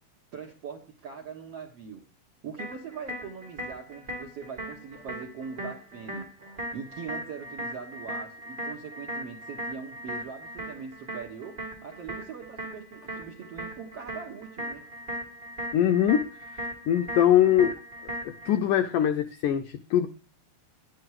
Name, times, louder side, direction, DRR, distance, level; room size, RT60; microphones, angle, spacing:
voice 1, 0.3-2.0 2.4-14.8, right 6 dB, 65° right, 1 dB, 1.5 m, -41 dB
sound 1, 2.6-18.6, equal, 15° right, 2.4 m, -38 dB
voice 2, 15.7-16.3 16.5-17.8 18.5-20.1, left 10 dB, 90° left, 8 dB, 1.8 m, -22 dB
11.0 x 11.0 x 4.7 m, 0.32 s
omnidirectional pair, 4.6 m